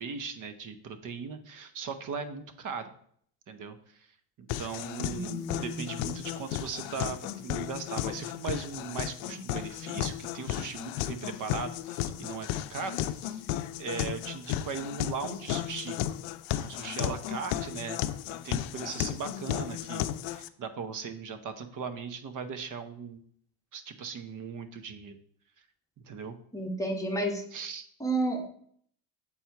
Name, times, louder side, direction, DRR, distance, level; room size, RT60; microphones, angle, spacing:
voice 1, 0.0-2.9 3.5-4.1 4.4-5.3 5.6-13.4 13.8-16.0 16.6-18.0 18.4-23.2 23.7-25.2 26.1-26.3 27.5-27.9, right 5 dB, 40° right, 10 dB, 0.9 m, -38 dB
sound 1, 4.5-20.5, left 12 dB, 75° left, 0.6 m, -34 dB
voice 2, 5.1-5.8 26.5-27.4 28.0-28.5, right 1 dB, 5° left, 1 dB, 1.1 m, -31 dB
7.3 x 4.3 x 4.6 m, 0.62 s
cardioid pair, 115°, 48 cm